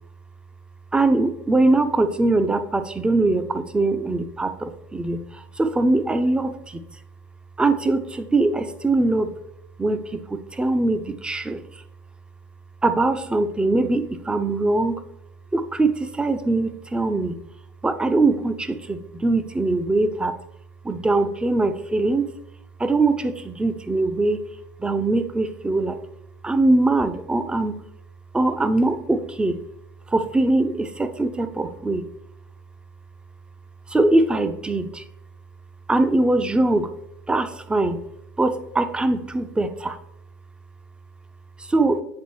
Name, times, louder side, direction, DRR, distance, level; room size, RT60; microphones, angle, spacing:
voice 1, 0.9-6.8 7.6-9.4 9.8-11.8 12.8-15.0 15.5-17.4 17.8-20.4 20.8-22.3 22.8-24.4 24.8-26.0 26.4-27.7 28.3-29.6 30.1-32.1 33.9-35.0 35.9-36.9 37.3-38.0 38.4-40.0 41.6-42.0, right 2 dB, 10° right, 10 dB, 0.5 m, -22 dB
8.6 x 3.9 x 3.1 m, 0.81 s
hypercardioid pair, 85°, 9 cm